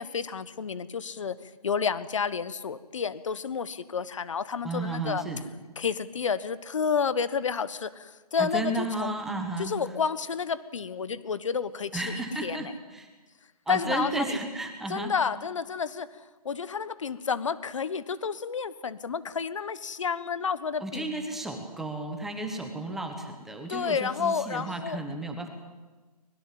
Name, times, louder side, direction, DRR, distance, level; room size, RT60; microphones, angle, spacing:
voice 1, 0.0-1.3 1.6-5.2 5.8-9.1 9.6-12.0 12.4-12.7 13.7-14.4 14.9-16.1 16.4-21.1 23.7-25.0, left 6 dB, 50° left, 16 dB, 1.3 m, -30 dB
voice 2, 4.6-5.4 8.4-9.7 11.9-13.1 13.7-15.1 20.8-25.5, right 2 dB, ahead, 4 dB, 1.2 m, -33 dB
24.5 x 21.5 x 7.6 m, 1.3 s
hypercardioid pair, 165°, 21 cm